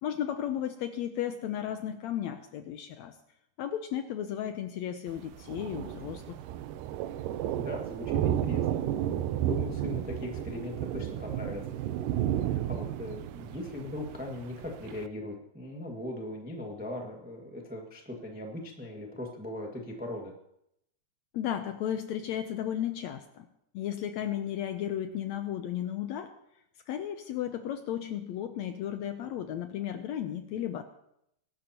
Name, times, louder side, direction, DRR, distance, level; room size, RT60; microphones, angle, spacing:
voice 1, 0.0-3.1 3.6-6.4 21.3-23.5 23.7-26.3 26.9-30.8, left 10 dB, 75° left, 7 dB, 1.7 m, -34 dB
Thunder, 5.1-15.1, right 11 dB, 85° right, 2.2 m, -33 dB
voice 2, 7.5-8.8 9.4-11.8 12.4-20.3, left 1 dB, 15° right, 0 dB, 0.3 m, -39 dB
22.0 x 12.0 x 2.9 m, 0.78 s
omnidirectional pair, 3.8 m